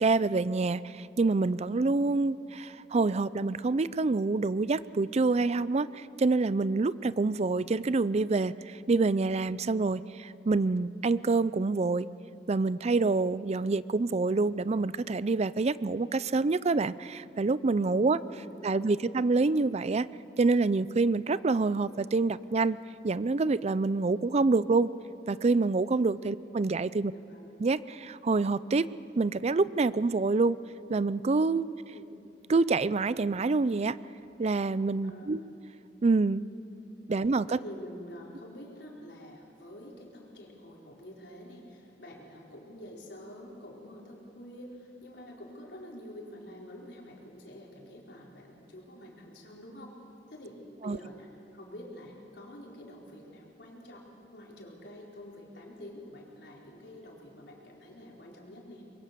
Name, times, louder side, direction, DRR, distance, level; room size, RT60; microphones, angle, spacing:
voice 1, 0.0-12.1 12.5-18.2 18.6-20.1 20.4-22.8 23.0-24.9 25.3-27.1 27.6-28.9 29.2-30.6 30.9-31.7 32.5-34.0 34.4-35.4 36.0-36.4 37.1-37.6 50.8-51.0, right 3 dB, 40° right, 17 dB, 0.5 m, -27 dB
voice 2, 17.8-19.0 26.1-26.3 27.0-27.5 31.9-32.0 35.0-35.4 37.5-49.9 50.3-51.3 51.5-54.0 54.3-58.8, left 1 dB, 75° left, -2 dB, 4.6 m, -47 dB
24.0 x 22.5 x 6.9 m, 2.7 s
head